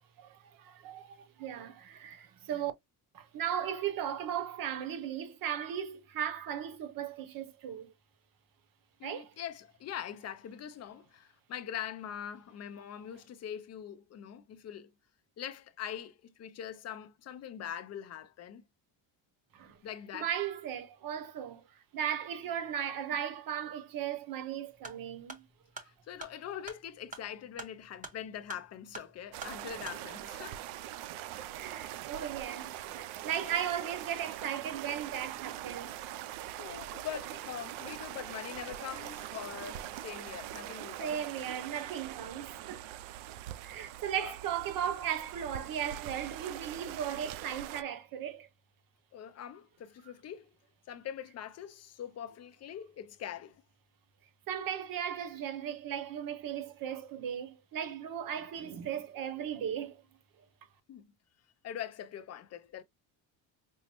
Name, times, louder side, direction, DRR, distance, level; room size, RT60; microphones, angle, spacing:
voice 1, 0.2-2.7 3.1-7.9 9.0-9.3 19.5-19.8 20.1-21.6 21.9-25.5 31.5-35.9 41.0-42.9 43.6-48.5 54.5-60.0, right 9 dB, 45° right, 0.8 m, -37 dB
voice 2, 9.0-14.9 15.4-18.6 19.8-20.3 25.8-30.6 36.6-41.2 44.2-44.3 49.1-50.5 50.9-53.6 60.9-61.1 61.6-62.8, left 9 dB, 35° left, 0.4 m, -43 dB
sound 1, 24.7-30.0, right 4 dB, 15° right, 0.7 m, -48 dB
sound 2, 29.3-47.8, right 12 dB, 85° right, 0.6 m, -43 dB
5.4 x 2.0 x 2.9 m
cardioid pair, 175°, 46 cm